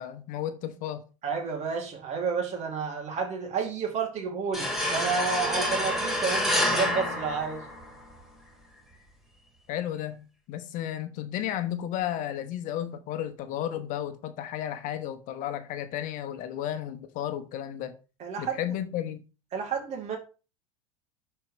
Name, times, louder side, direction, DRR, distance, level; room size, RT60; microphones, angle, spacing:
voice 1, 0.0-1.0 9.7-18.0 18.4-19.2, left 11 dB, 50° left, 1.0 m, -33 dB
voice 2, 1.2-7.6 18.2-18.6 19.5-20.2, right 5 dB, 40° right, 2.8 m, -30 dB
sound 1, 4.5-8.1, left 1 dB, ahead, 2.8 m, -28 dB
11.5 x 4.6 x 3.3 m
hypercardioid pair, 85°, 18 cm